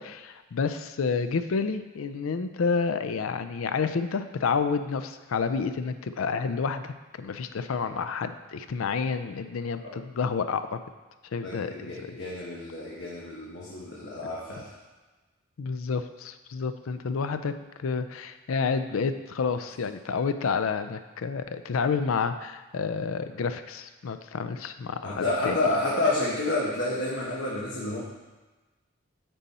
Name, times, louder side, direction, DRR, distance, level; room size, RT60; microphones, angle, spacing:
voice 1, 0.0-10.8 11.3-12.0 15.6-17.5 17.8-25.6, left 5 dB, 75° left, 10 dB, 0.4 m, -29 dB
voice 2, 11.4-14.7 25.0-28.0, left 2 dB, 60° left, -5 dB, 1.1 m, -29 dB
9.0 x 4.2 x 4.2 m, 1.2 s
head